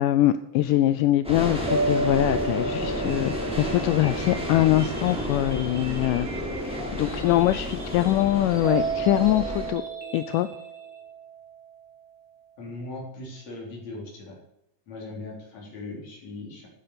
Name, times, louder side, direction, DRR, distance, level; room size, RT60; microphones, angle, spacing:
voice 1, 0.0-6.3 6.5-9.8 10.1-10.5, left 14 dB, 80° left, 12 dB, 2.1 m, -23 dB
sound 1, 1.2-9.7, equal, ahead, 3.3 m, -31 dB
sound 2, 1.7-5.2 8.6-11.7, right 3 dB, 70° right, 6.1 m, -32 dB
sound 3, 3.0-11.0, right 3 dB, 30° right, 2.7 m, -42 dB
voice 2, 12.6-14.4 14.9-16.7, left 2 dB, 55° left, -2 dB, 5.0 m, -39 dB
12.0 x 9.2 x 6.8 m, 0.82 s
omnidirectional pair, 3.9 m